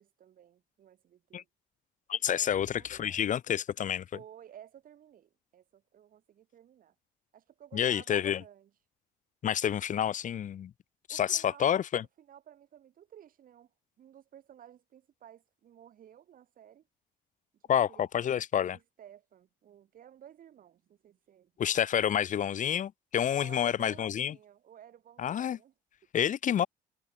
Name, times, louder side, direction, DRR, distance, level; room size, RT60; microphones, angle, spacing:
voice 1, 0.0-1.5 2.3-3.3 4.1-7.0 7.3-8.7 11.1-11.8 12.2-16.9 17.7-18.4 18.7-21.5 21.9-22.4 23.2-25.7, right 10 dB, 55° right, 7.1 m, -54 dB
voice 2, 2.1-4.1 7.7-8.4 9.4-10.7 11.1-12.0 17.7-18.8 21.6-24.3 25.2-25.6 26.1-26.7, left 9 dB, 50° left, 1.7 m, -29 dB
cardioid pair, 110°, 17 cm